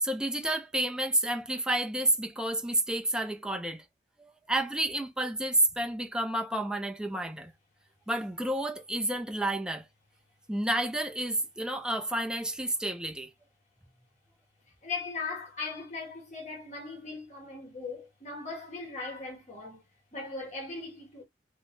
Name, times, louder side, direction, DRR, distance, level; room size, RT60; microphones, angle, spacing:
voice 1, 0.0-3.8 4.2-7.5 8.1-9.8 10.5-13.3, right 1 dB, 5° right, 0.4 m, -30 dB
voice 2, 14.8-19.8 20.1-21.2, left 4 dB, 40° left, 1.5 m, -39 dB
2.9 x 2.0 x 3.1 m
head